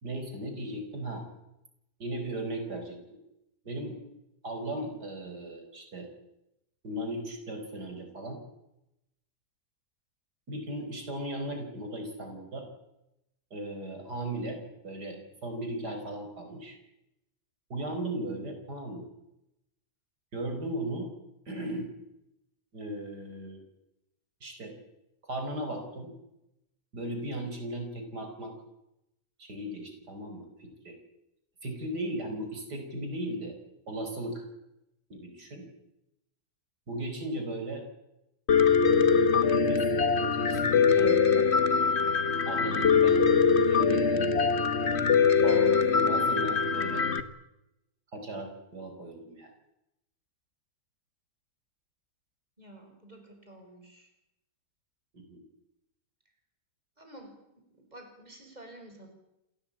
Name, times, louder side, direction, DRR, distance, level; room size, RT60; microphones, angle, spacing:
voice 1, 0.0-1.2 2.0-3.2 3.6-4.0 4.4-6.1 6.8-8.4 10.5-12.7 13.5-16.8 17.7-19.1 20.3-21.1 21.5-21.9 22.7-23.6 24.4-24.7 25.2-26.1 26.9-28.5 29.4-31.0 31.6-33.5 33.9-34.5 35.1-35.7 36.9-37.8 39.3-41.5 42.5-43.2 43.7-44.5 45.4-47.1 48.1-49.5 55.1-55.4, right 1 dB, 90° right, 5 dB, 5.4 m, -37 dB
Piano, 38.5-47.2, left 5 dB, 45° left, 1.6 m, -23 dB
voice 2, 52.6-54.1 57.0-57.3 57.8-59.1, right 1 dB, 25° right, 4 dB, 6.0 m, -50 dB
28.0 x 18.0 x 8.8 m, 0.88 s
omnidirectional pair, 1.7 m